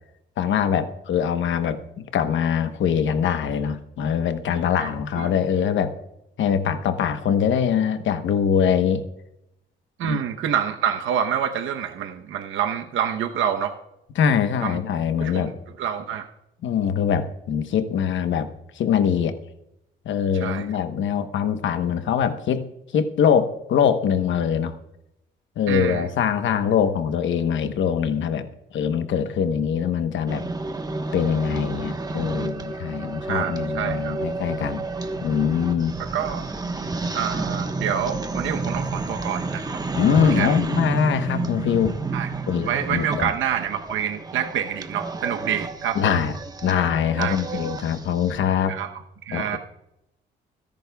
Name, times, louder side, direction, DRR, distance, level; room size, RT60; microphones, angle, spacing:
voice 1, 0.4-6.0 6.4-9.0 10.0-10.2 14.1-15.5 16.6-18.5 18.8-19.4 20.0-22.6 22.9-24.7 25.6-28.5 28.7-30.5 31.1-34.8 35.2-35.9 39.9-42.0 42.5-43.3 45.9-46.3 46.6-48.7 49.3-49.6, left 8 dB, 70° left, 9 dB, 1.0 m, -23 dB
voice 2, 10.0-13.7 14.6-14.8 15.2-15.5 15.8-16.2 20.3-20.7 25.7-26.1 33.3-34.1 36.0-36.5 37.1-39.8 40.2-40.6 42.1-42.3 42.7-46.2 47.2-47.3 48.7-48.9 49.2-49.6, right 8 dB, 80° right, 6 dB, 0.9 m, -27 dB
sound 1, 30.3-48.4, right 3 dB, 20° right, 1.2 m, -30 dB
29.0 x 10.5 x 2.3 m, 0.84 s
cardioid pair, 90°, 20 cm